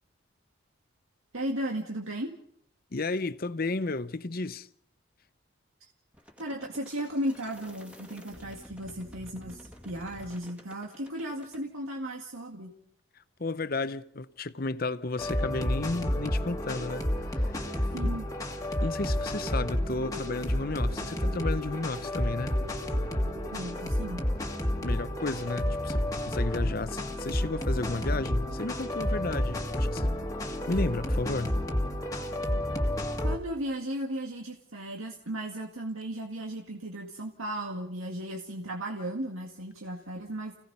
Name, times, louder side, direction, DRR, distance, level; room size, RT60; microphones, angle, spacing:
voice 1, 1.3-2.3 6.4-12.7 17.9-18.3 23.5-24.3 33.2-40.6, right 1 dB, 80° right, 1.9 m, -35 dB
voice 2, 2.9-4.7 13.4-17.1 17.3-18.1 18.8-22.6 24.8-30.2 30.7-31.6, left 3 dB, 45° left, 0.7 m, -33 dB
sound 1, 6.1-11.6, equal, 5° right, 2.2 m, -50 dB
sound 2, 15.2-33.4, left 1 dB, 15° left, 1.8 m, -30 dB
30.0 x 17.0 x 5.5 m
head